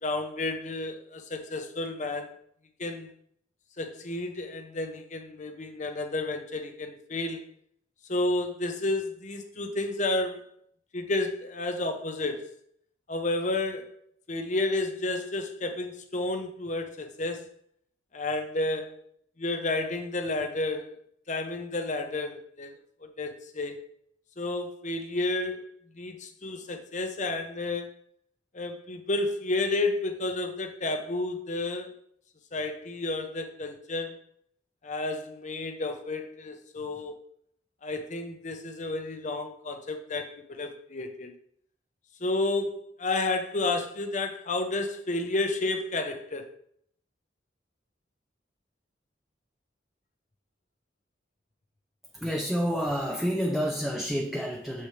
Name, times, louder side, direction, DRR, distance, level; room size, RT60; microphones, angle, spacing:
voice 1, 0.0-2.3 2.8-3.1 3.8-7.5 8.1-10.4 10.9-12.4 13.1-13.9 14.3-17.5 18.1-19.1 19.4-20.9 21.3-22.7 23.0-23.8 24.4-25.7 25.9-27.9 28.5-31.9 32.5-34.1 34.8-37.2 37.8-41.3 42.2-46.5, left 2 dB, 40° left, 6 dB, 0.9 m, -31 dB
voice 2, 52.1-54.9, equal, ahead, 0 dB, 0.6 m, -29 dB
7.1 x 6.5 x 3.3 m, 0.67 s
head